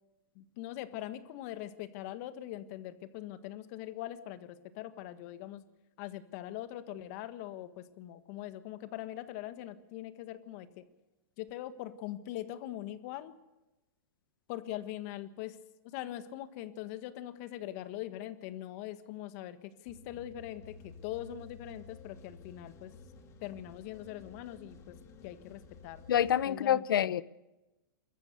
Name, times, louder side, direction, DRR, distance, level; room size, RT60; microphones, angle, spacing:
voice 1, 0.3-5.6 6.0-10.8 11.4-13.3 14.5-15.6 15.8-22.9 23.4-25.0 25.2-26.0 26.4-27.1, left 13 dB, 45° left, 11 dB, 1.5 m, -42 dB
sound 1, 19.9-26.5, left 3 dB, 25° left, 2.3 m, -53 dB
voice 2, 26.1-27.2, left 10 dB, 80° left, 19 dB, 0.8 m, -27 dB
29.0 x 14.0 x 6.8 m, 1.0 s
hypercardioid pair, 140°, 12 cm